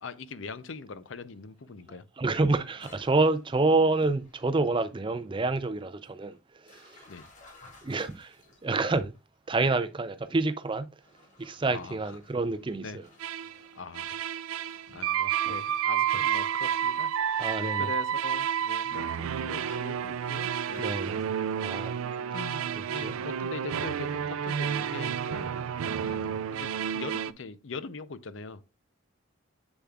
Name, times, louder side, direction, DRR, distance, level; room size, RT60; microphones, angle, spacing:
voice 1, 0.0-2.0 7.1-7.3 11.7-12.1 12.8-13.0 13.8-14.2 14.9-20.9 22.3-25.5 26.0-28.6, left 4 dB, 65° left, 0.6 m, -42 dB
voice 2, 2.2-6.4 6.6-7.0 7.8-8.4 8.6-9.1 9.5-10.8 11.4-13.0 17.4-17.9 20.8-21.2 21.6-21.9 23.0-23.1, right 3 dB, 25° right, 0.4 m, -27 dB
sound 1, 2.8-4.9 5.2-5.6 6.0-9.6 10.3-10.4 10.9-17.5 18.1-18.3 19.0-19.1 19.6-19.9 20.4-21.8, left 2 dB, 35° left, 2.0 m, -57 dB
sound 2, 13.2-13.6 13.9-27.3, right 8 dB, 90° right, 0.4 m, -30 dB
7.2 x 6.8 x 2.4 m
head